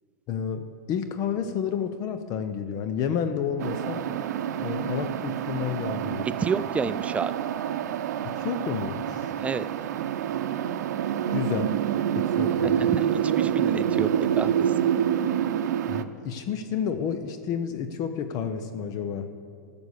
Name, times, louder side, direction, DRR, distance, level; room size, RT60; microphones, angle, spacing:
voice 1, 0.3-4.1 4.5-6.3 8.2-9.3 11.3-11.8 12.1-12.8 13.9-14.1 15.9-19.3, left 7 dB, 40° left, 9 dB, 0.7 m, -30 dB
sound 1, 3.6-16.0, right 9 dB, 70° right, 0.7 m, -27 dB
voice 2, 6.4-7.3 9.4-9.6 12.6-14.1 14.4-14.7, right 5 dB, 15° right, 15 dB, 0.4 m, -29 dB
12.5 x 7.0 x 8.1 m, 2.2 s
hypercardioid pair, 110°, 9 cm